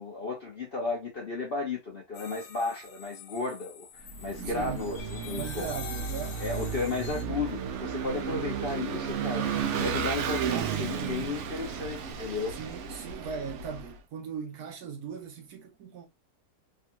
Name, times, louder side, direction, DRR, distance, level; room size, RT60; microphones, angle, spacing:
voice 1, 0.0-3.9 4.2-5.7 6.4-12.5, left 3 dB, 50° left, 0.7 m, -34 dB
sound 1, 2.1-7.2, left 6 dB, 85° left, 1.3 m, -45 dB
Vehicle / Engine, 4.1-13.9, right 7 dB, 85° right, 0.6 m, -33 dB
voice 2, 4.4-4.9 5.3-6.4 12.5-16.1, right 6 dB, 70° right, 1.1 m, -39 dB
3.4 x 2.3 x 2.8 m
omnidirectional pair, 1.9 m